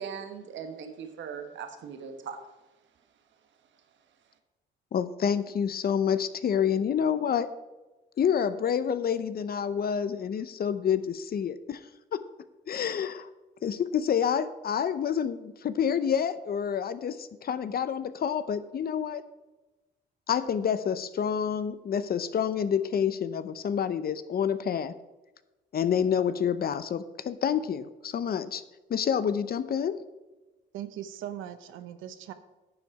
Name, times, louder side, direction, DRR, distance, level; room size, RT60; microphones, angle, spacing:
voice 1, 0.0-2.4, right 6 dB, 70° right, 6 dB, 1.3 m, -39 dB
voice 2, 4.9-7.5 8.2-11.8 12.1-12.2 12.7-13.3 13.6-19.2 20.3-24.9 25.7-28.6 28.9-30.0, left 8 dB, 50° left, 13 dB, 0.7 m, -28 dB
voice 3, 30.7-32.3, right 11 dB, 90° right, 11 dB, 0.8 m, -39 dB
10.5 x 7.1 x 4.8 m, 1.1 s
cardioid pair, 90°, 20 cm